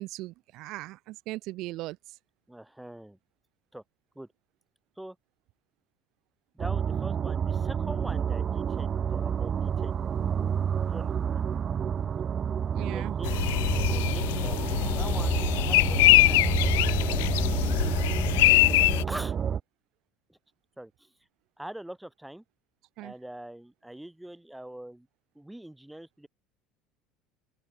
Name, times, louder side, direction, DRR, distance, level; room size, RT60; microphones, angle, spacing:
voice 1, 0.0-2.0 12.7-13.1 23.0-23.1, right 19 dB, 65° right, 1.2 m, -38 dB
voice 2, 2.5-3.2 3.7-3.8 4.2-4.3 5.0-5.2 6.5-10.2 10.8-11.5 12.7-14.6 14.9-16.0 16.2-16.7 19.0-19.4 20.3-20.4 20.8-21.1 21.6-22.4 23.0-25.1 25.3-26.3, right 1 dB, 5° right, 5.7 m, -43 dB
sound 1, 6.6-19.6, right 7 dB, 35° right, 2.3 m, -29 dB
sound 2, 13.2-19.0, left 21 dB, 85° left, 0.9 m, -23 dB
open air
supercardioid pair, 105°, 0 cm